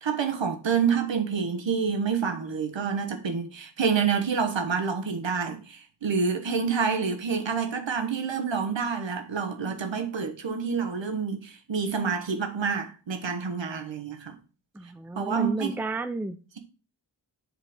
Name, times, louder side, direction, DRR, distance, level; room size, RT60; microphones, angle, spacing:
voice 1, 0.0-14.4 15.2-15.8, right 6 dB, 80° right, 1.3 m, -28 dB
voice 2, 14.7-16.4, right 2 dB, 5° right, 0.4 m, -32 dB
7.3 x 3.9 x 5.0 m
wide cardioid pair, 85°, 44 cm